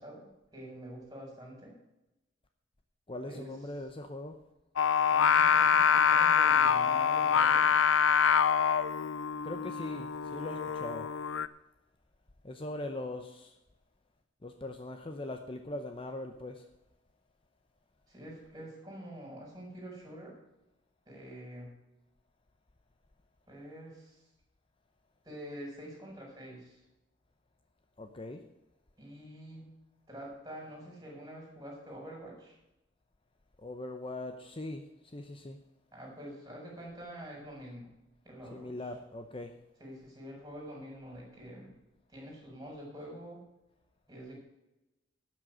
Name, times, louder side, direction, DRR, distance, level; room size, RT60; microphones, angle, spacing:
voice 1, 0.0-1.7 3.3-3.5 5.1-7.9 18.1-20.3 21.1-21.7 23.5-24.2 25.2-26.8 29.0-29.7 30.1-32.5 35.9-37.9 38.2-38.7 39.8-41.7 42.1-43.4 44.1-44.4, equal, 20° right, -2 dB, 5.0 m, -46 dB
voice 2, 3.1-4.4 9.4-11.1 12.4-13.5 14.4-16.7 28.0-28.4 33.6-34.9 35.1-35.6 38.5-39.5, left 1 dB, 25° left, 6 dB, 0.7 m, -41 dB
Singing, 4.8-11.5, left 7 dB, 75° left, 0.5 m, -25 dB
12.0 x 6.3 x 7.9 m, 0.94 s
head